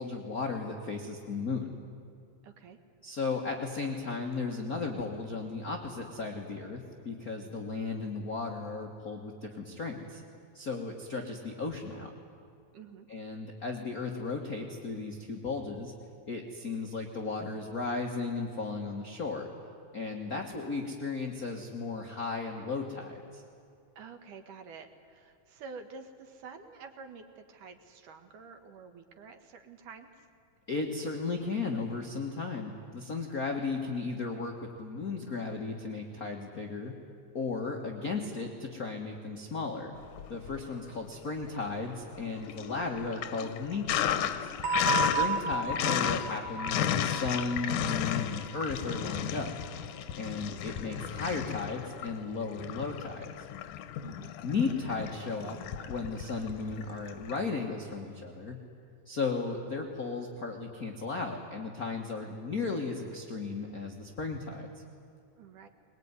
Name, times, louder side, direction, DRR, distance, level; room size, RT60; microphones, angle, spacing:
voice 1, 0.0-1.7 3.0-10.2 10.5-12.1 13.1-15.9 16.3-19.5 19.9-23.4 30.7-36.9 37.3-39.9 40.3-44.5 45.0-49.5 50.2-53.5 54.4-55.6 55.9-58.6 59.0-64.7, left 4 dB, 40° left, 1 dB, 1.5 m, -35 dB
voice 2, 2.4-2.8 12.7-13.1 24.0-30.3 54.0-54.4 65.4-65.7, right 5 dB, 85° right, 6 dB, 3.2 m, -49 dB
Sink (filling or washing), 40.1-40.9 41.3-57.4, left 10 dB, 85° left, 2.5 m, -34 dB
sound 1, 44.6-49.3, right 3 dB, 65° right, 2.1 m, -33 dB
22.0 x 21.5 x 9.6 m, 2.5 s
omnidirectional pair, 3.5 m